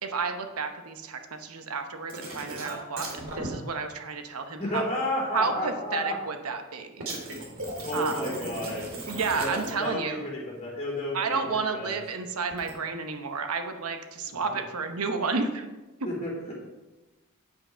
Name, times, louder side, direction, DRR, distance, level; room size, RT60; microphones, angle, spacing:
voice 1, 0.0-4.8 5.3-7.1 7.9-8.4 9.1-10.2 11.1-15.7, right 4 dB, 85° right, 6 dB, 1.0 m, -31 dB
sound 1, 2.1-3.5 7.0-10.0 12.5-12.7, right 2 dB, 65° right, 2.4 m, -37 dB
voice 2, 4.6-6.1 7.8-8.8 9.3-11.9 14.3-14.6 16.0-16.6, left 1 dB, 30° left, -4 dB, 3.3 m, -32 dB
8.7 x 8.0 x 4.5 m, 1.1 s
head